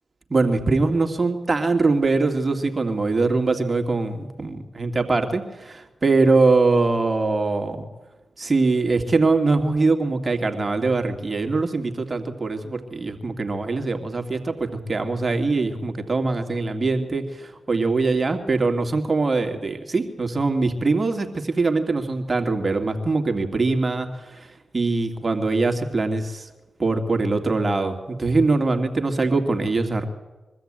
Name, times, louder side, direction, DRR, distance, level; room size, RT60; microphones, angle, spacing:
voice 1, 0.3-7.9 8.4-26.5 26.8-30.1, right 3 dB, 40° right, 4 dB, 2.6 m, -22 dB
23.0 x 13.5 x 9.0 m, 1.1 s
supercardioid pair, 45°, 0 cm